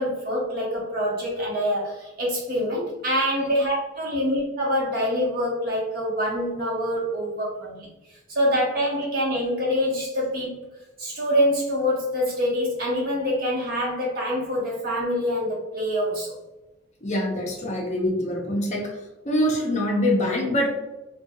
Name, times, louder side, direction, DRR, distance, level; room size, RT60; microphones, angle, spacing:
voice 1, 0.0-10.6 11.0-16.3, equal, 50° right, -5 dB, 0.9 m, -25 dB
voice 2, 17.0-18.8 19.2-20.7, left 1 dB, 35° left, -1 dB, 0.5 m, -24 dB
2.6 x 2.2 x 2.6 m, 1.0 s
head